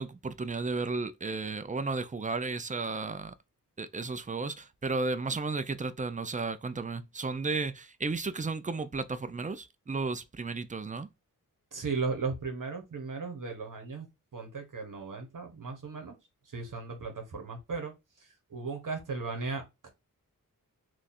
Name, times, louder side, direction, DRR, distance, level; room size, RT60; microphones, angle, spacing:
voice 1, 0.0-3.3 3.8-11.1, right 3 dB, 25° right, 0.4 m, -33 dB
voice 2, 11.7-16.2 16.5-17.9 18.5-19.9, right 4 dB, 65° right, 1.3 m, -36 dB
3.1 x 2.5 x 4.1 m
wide cardioid pair, 70°, 34 cm